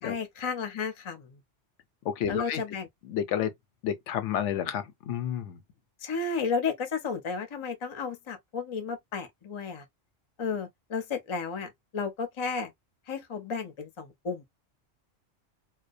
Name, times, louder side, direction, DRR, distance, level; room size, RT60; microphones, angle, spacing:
voice 1, 0.0-1.4 2.3-2.9 6.0-9.9 10.4-12.7 13.1-14.4, left 5 dB, 35° left, 0.5 m, -33 dB
voice 2, 2.0-2.6 3.0-3.5 3.8-5.6, left 9 dB, 85° left, 0.9 m, -30 dB
2.3 x 2.1 x 2.4 m
omnidirectional pair, 1.2 m